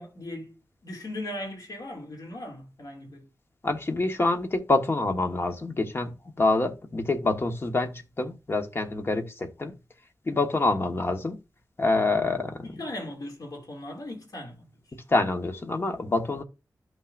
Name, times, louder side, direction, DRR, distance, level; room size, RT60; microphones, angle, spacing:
voice 1, 0.0-3.3 12.6-15.0, left 1 dB, 65° left, 2.6 m, -38 dB
voice 2, 3.6-9.7 10.3-11.4 11.8-12.6 15.1-16.4, left 2 dB, 35° left, 1.3 m, -26 dB
12.5 x 5.9 x 2.6 m
wide cardioid pair, 120°, 7 cm